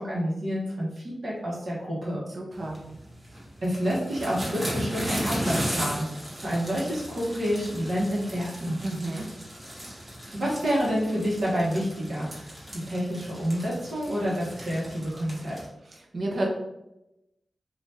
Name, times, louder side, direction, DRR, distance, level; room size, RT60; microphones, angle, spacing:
voice 1, 0.0-2.2 3.6-8.8 10.3-15.6, equal, 70° right, -6 dB, 1.0 m, -29 dB
voice 2, 2.3-2.8 8.8-9.3 16.1-16.5, right 2 dB, 55° right, -1 dB, 0.7 m, -30 dB
sound 1, 2.6-15.7, equal, 35° right, 1.3 m, -36 dB
2.8 x 2.4 x 3.3 m, 0.90 s
wide cardioid pair, 95°, 0 cm